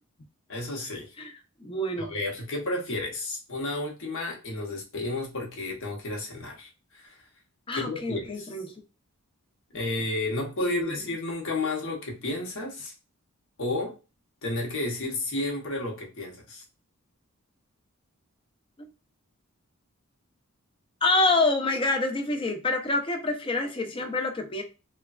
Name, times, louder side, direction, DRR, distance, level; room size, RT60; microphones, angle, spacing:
voice 1, 0.5-1.1 2.0-7.2 7.8-8.5 9.7-12.9 13.6-14.0 14.4-16.6, left 2 dB, 60° left, 0.9 m, -32 dB
voice 2, 1.6-2.1 7.7-8.7 10.6-11.0 21.0-24.6, left 2 dB, 25° left, 0.5 m, -27 dB
3.1 x 2.2 x 2.3 m
head